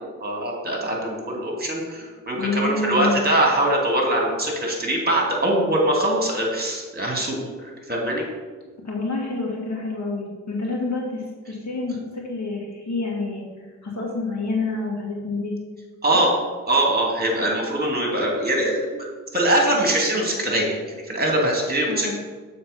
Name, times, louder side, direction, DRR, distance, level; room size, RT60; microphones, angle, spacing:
voice 1, 0.2-8.2 16.0-16.3 16.7-19.1 19.3-22.1, right 1 dB, 25° right, -1 dB, 2.3 m, -22 dB
voice 2, 2.4-3.2 8.8-13.5 13.8-15.5 16.1-16.2 21.9-22.1, left 3 dB, 45° left, -2 dB, 2.5 m, -28 dB
7.1 x 4.5 x 5.7 m, 1.4 s
hypercardioid pair, 45°, 40 cm